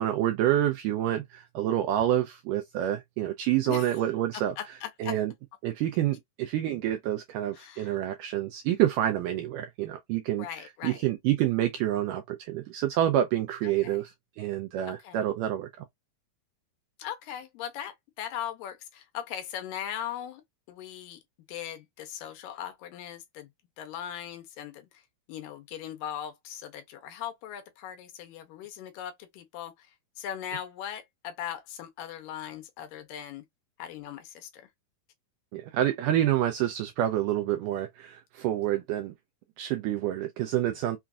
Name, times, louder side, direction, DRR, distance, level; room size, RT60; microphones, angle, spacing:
voice 1, 0.0-4.5 5.0-5.3 5.6-10.5 10.8-15.9 35.5-39.1 39.6-41.0, right 12 dB, 85° right, 1.8 m, -28 dB
voice 2, 4.3-5.2 7.5-8.0 10.4-11.0 13.6-14.0 14.9-15.3 17.0-20.4 20.7-21.2 21.5-23.5 23.8-25.0 25.3-29.9 30.2-33.4 33.8-34.7, left 10 dB, 80° left, 2.2 m, -39 dB
5.8 x 2.5 x 2.3 m
omnidirectional pair, 4.2 m